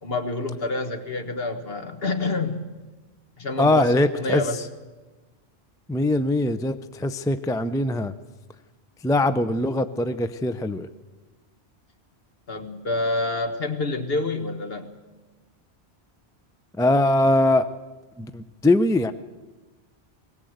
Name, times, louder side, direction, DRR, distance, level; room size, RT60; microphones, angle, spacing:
voice 1, 0.0-2.6 3.4-4.7 12.5-14.9, left 2 dB, 65° left, 6 dB, 1.8 m, -27 dB
voice 2, 3.6-4.4 5.9-8.1 9.0-10.9 16.8-17.7 18.2-19.1, left 2 dB, 5° left, 11 dB, 0.4 m, -22 dB
20.5 x 17.5 x 8.0 m, 1.2 s
omnidirectional pair, 1.1 m